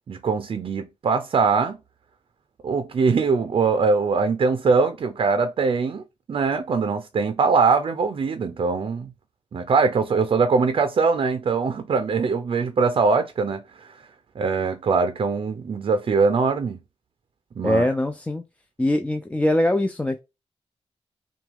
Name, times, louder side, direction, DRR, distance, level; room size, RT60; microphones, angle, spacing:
voice 1, 0.1-1.8 2.6-6.0 6.3-9.1 9.5-13.9 14.4-16.8 17.6-17.9, right 4 dB, 50° right, 0.5 m, -22 dB
voice 2, 17.6-18.4 18.8-20.2, left 1 dB, 10° left, 0.3 m, -22 dB
5.8 x 2.3 x 3.6 m
wide cardioid pair, 145°, 11 cm